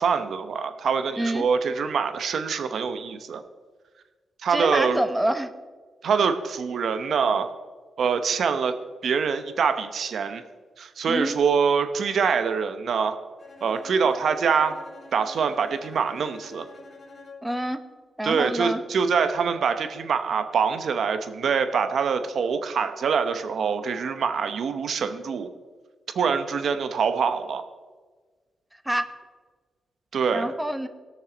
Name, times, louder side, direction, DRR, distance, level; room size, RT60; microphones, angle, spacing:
voice 1, 0.0-3.4 4.4-5.0 6.0-7.5 8.0-8.8 9.0-10.4 10.8-13.2 13.6-14.8 15.1-16.7 18.2-25.5 26.1-27.6 30.1-30.5, right 6 dB, 75° right, 9 dB, 0.9 m, -24 dB
voice 2, 1.2-1.5 4.5-5.5 11.1-11.4 17.4-17.8 18.2-18.8 28.8-29.0 30.3-30.9, right 1 dB, 10° right, 9 dB, 1.1 m, -26 dB
Bowed string instrument, 13.4-17.6, left 3 dB, 55° left, 2.2 m, -47 dB
19.0 x 6.6 x 3.9 m, 1.4 s
cardioid pair, 60°, 0 cm